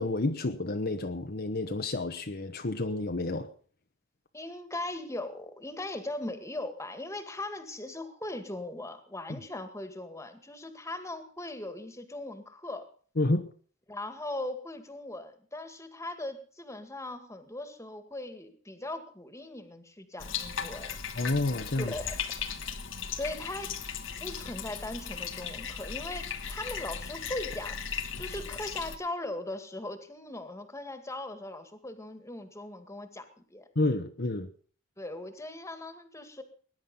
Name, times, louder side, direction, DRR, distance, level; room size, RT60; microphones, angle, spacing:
voice 1, 0.0-3.5 9.3-9.4 13.2-13.5 21.1-21.9 33.7-34.5, left 2 dB, 55° left, 1.1 m, -30 dB
voice 2, 4.3-12.9 13.9-21.0 21.8-22.2 23.1-23.7 24.2-27.8 28.2-33.7 35.0-36.4, left 2 dB, 15° left, 2.1 m, -39 dB
Bathtub (filling or washing), 20.2-29.0, left 7 dB, 75° left, 1.6 m, -37 dB
19.5 x 10.5 x 5.5 m
head